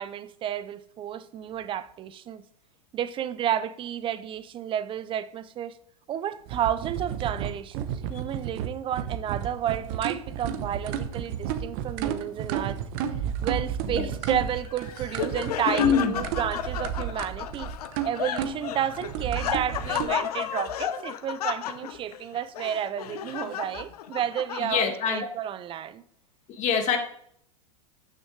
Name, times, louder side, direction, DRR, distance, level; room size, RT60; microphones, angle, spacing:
voice 1, 0.0-2.4 2.9-5.8 6.1-12.8 13.4-17.7 18.0-26.0, right 10 dB, 25° right, 0.5 m, -31 dB
sound 1, 6.5-20.1, right 8 dB, 50° right, 1.0 m, -32 dB
Laughter, 14.5-25.1, left 10 dB, 80° left, 0.8 m, -33 dB
voice 2, 15.8-16.2 24.6-25.3 26.5-27.0, left 7 dB, 35° left, 1.8 m, -24 dB
11.5 x 6.5 x 3.3 m
hypercardioid pair, 120°, 20 cm